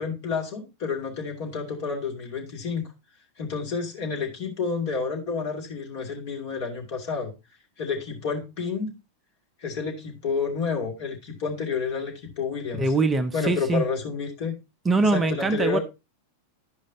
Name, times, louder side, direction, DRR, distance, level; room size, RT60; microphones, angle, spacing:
voice 1, 0.0-2.9 3.4-7.3 7.8-8.9 9.6-12.9 13.3-14.5 15.0-15.8, left 5 dB, 50° left, 2.8 m, -30 dB
voice 2, 12.8-13.9 14.9-15.8, right 3 dB, 15° right, 0.6 m, -23 dB
11.5 x 5.2 x 3.9 m
figure-of-eight pair, 90°, 0 cm